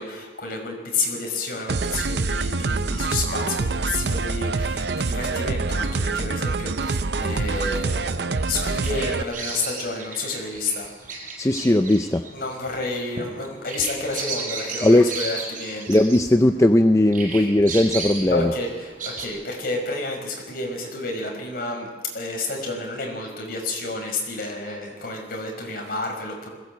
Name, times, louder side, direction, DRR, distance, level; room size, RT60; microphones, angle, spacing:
voice 1, 0.0-10.9 12.3-16.0 18.3-21.9 22.1-26.5, left 3 dB, 55° left, 1 dB, 5.6 m, -30 dB
sound 1, 1.7-9.2, right 3 dB, 65° right, 0.7 m, -25 dB
Bird vocalization bird call bird song, 8.4-16.8 17.1-19.3, right 3 dB, 45° right, 5.3 m, -34 dB
voice 2, 11.4-12.3 14.8-15.1 15.9-18.5, left 1 dB, 15° left, 7 dB, 0.5 m, -18 dB
21.0 x 17.0 x 8.3 m, 1.4 s
head